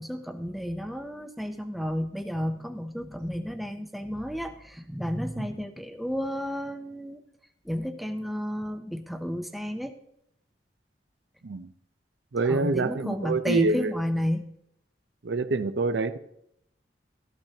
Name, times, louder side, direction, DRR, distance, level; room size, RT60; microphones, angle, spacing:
voice 1, 0.0-7.2 7.7-9.9 12.5-14.4, equal, ahead, 7 dB, 0.5 m, -32 dB
voice 2, 12.3-13.9 15.2-16.2, right 3 dB, 75° right, 11 dB, 0.6 m, -26 dB
13.5 x 12.0 x 2.8 m, 0.76 s
head